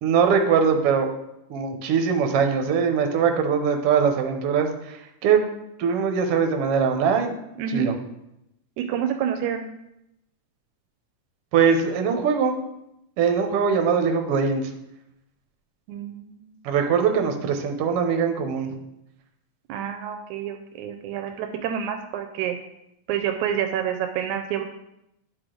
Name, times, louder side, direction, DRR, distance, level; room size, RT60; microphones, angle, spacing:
voice 1, 0.0-1.1 1.5-5.5 5.8-7.4 7.7-7.9 11.5-12.6 13.2-14.6 16.6-18.7, right 6 dB, 70° right, 5 dB, 1.5 m, -22 dB
voice 2, 7.6-7.9 8.8-9.6 15.9-16.5 19.7-22.6 23.1-24.6, right 9 dB, 85° right, 5 dB, 2.1 m, -28 dB
11.0 x 4.8 x 3.8 m, 0.84 s
omnidirectional pair, 3.4 m